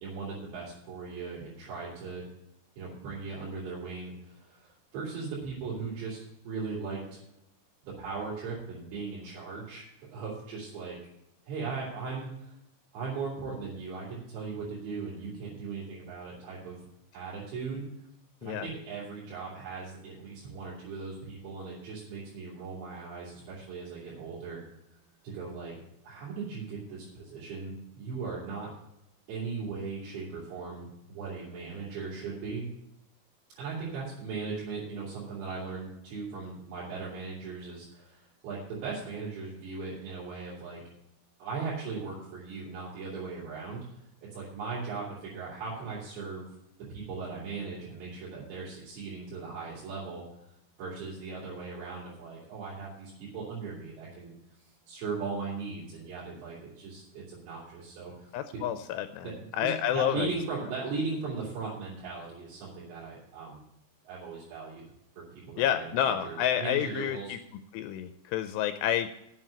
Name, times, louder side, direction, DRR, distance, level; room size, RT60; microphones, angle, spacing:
voice 1, 0.0-2.3 2.8-7.2 7.8-9.8 10.1-11.0 11.5-12.5 12.9-16.9 17.1-17.8 18.4-24.6 25.2-25.7 26.0-28.7 29.3-32.7 33.6-40.8 41.4-44.0 44.3-46.5 46.9-50.2 50.8-54.3 54.9-58.3 59.2-63.6 64.0-64.8 65.2-67.4, right 4 dB, 85° right, -8 dB, 5.1 m, -38 dB
voice 2, 58.3-60.3 65.6-67.4 67.7-69.1, left 10 dB, 85° left, 9 dB, 2.7 m, -29 dB
7.9 x 7.4 x 8.6 m, 0.81 s
omnidirectional pair, 4.9 m